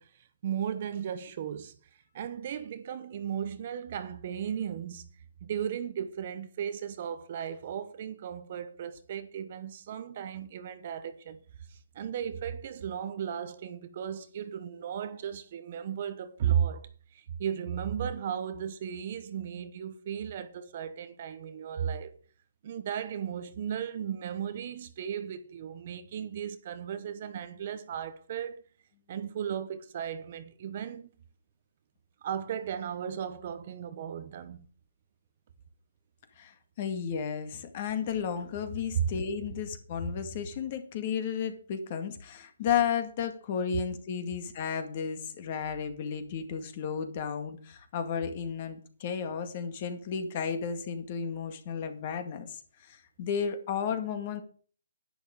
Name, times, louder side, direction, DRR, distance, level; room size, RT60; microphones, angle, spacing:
voice 1, 0.0-1.8 2.1-5.1 5.4-11.4 11.7-22.1 22.6-28.6 29.1-31.1 32.2-34.7 38.9-39.1 43.7-43.8, right 8 dB, 35° right, 1.0 m, -35 dB
voice 2, 36.4-54.4, left 7 dB, 30° left, 1.9 m, -33 dB
11.0 x 10.5 x 4.9 m
hypercardioid pair, 170°, 0 cm